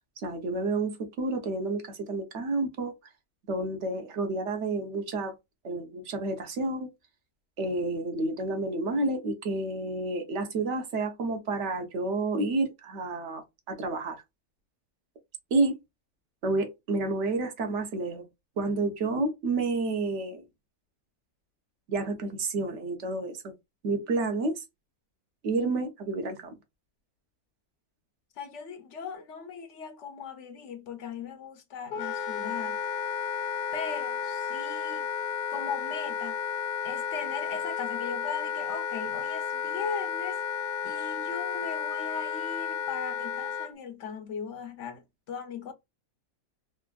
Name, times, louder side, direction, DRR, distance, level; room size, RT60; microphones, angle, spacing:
voice 1, 0.2-2.9 3.5-5.3 5.6-6.9 7.6-14.2 15.5-15.8 16.4-18.3 18.6-20.4 21.9-23.5 23.8-24.6 25.4-26.6, right 2 dB, 60° right, 1.0 m, -30 dB
voice 2, 28.4-32.8 33.7-35.1 35.5-36.4 36.8-40.4 40.8-45.7, left 6 dB, 65° left, 0.8 m, -38 dB
Wind instrument woodwind instrument, 31.9-43.7, left 7 dB, 90° left, 1.1 m, -32 dB
3.4 x 2.4 x 2.2 m
omnidirectional pair, 1.5 m